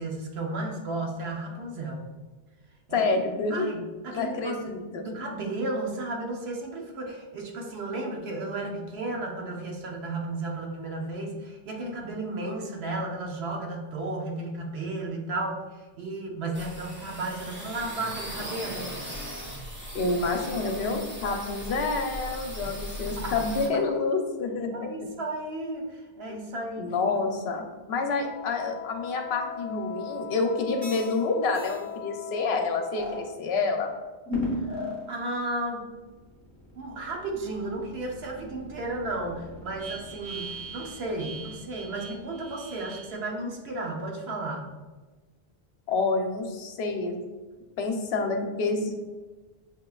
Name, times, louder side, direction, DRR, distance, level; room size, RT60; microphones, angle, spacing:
voice 1, 0.0-2.0 2.9-3.1 3.5-4.7 5.0-18.9 22.6-22.7 23.2-23.4 24.7-26.9 27.5-27.6 34.4-35.8 36.8-44.6, right 2 dB, 75° right, 0 dB, 1.0 m, -34 dB
voice 2, 2.9-3.7 4.1-5.1 19.9-24.9 26.8-27.6 27.9-33.9 45.9-47.2 47.8-48.9, left 3 dB, 80° left, 4 dB, 0.9 m, -28 dB
sound 1, 16.5-23.7, equal, 15° right, 0.5 m, -38 dB
Wind instrument woodwind instrument, 28.2-33.4, left 8 dB, 60° left, 0.6 m, -40 dB
sound 2, 30.8-31.2 31.5-31.8 32.9-33.2 34.3-35.1 35.6-43.2, left 1 dB, 50° right, 1.5 m, -37 dB
6.6 x 2.9 x 2.3 m, 1.2 s
omnidirectional pair, 1.1 m